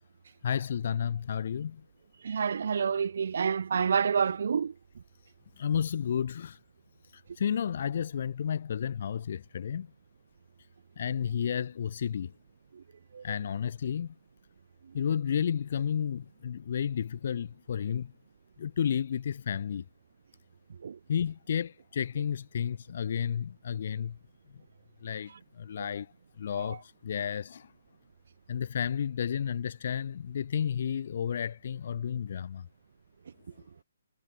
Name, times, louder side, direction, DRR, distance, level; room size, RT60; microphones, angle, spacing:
voice 1, 0.4-1.8 5.6-6.6 7.1-9.9 11.0-12.3 13.2-14.1 14.9-18.1 18.6-19.8 21.1-24.2 25.0-27.7 28.5-32.7, left 8 dB, 50° left, 3.7 m, -32 dB
voice 2, 2.2-4.7 13.1-13.2 20.8-21.0, right 6 dB, 60° right, 0.5 m, -28 dB
hypercardioid pair, 165°, 0 cm